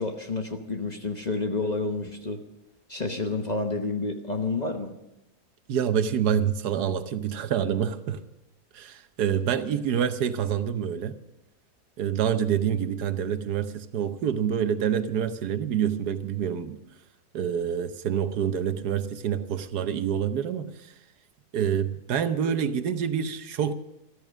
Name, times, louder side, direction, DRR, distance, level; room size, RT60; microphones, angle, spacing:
voice 1, 0.0-2.4 2.9-4.9, left 3 dB, 30° left, 1.0 m, -29 dB
voice 2, 5.7-8.2 8.7-11.2 12.0-16.8 17.3-20.9 21.5-23.7, right 8 dB, 80° right, 1.4 m, -27 dB
14.0 x 13.5 x 6.2 m
omnidirectional pair, 1.7 m